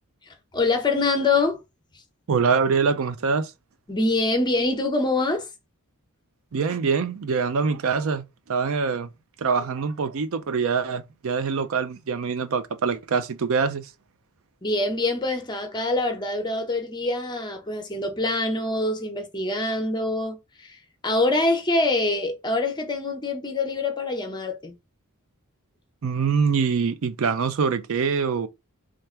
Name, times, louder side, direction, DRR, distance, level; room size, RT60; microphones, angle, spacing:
voice 1, 0.5-1.6 3.9-5.5 14.6-20.8 21.0-24.8, left 2 dB, 20° left, 0.8 m, -25 dB
voice 2, 2.3-3.5 6.5-9.1 9.4-13.9 26.0-28.5, right 5 dB, 65° right, 0.5 m, -24 dB
3.4 x 2.4 x 4.3 m
head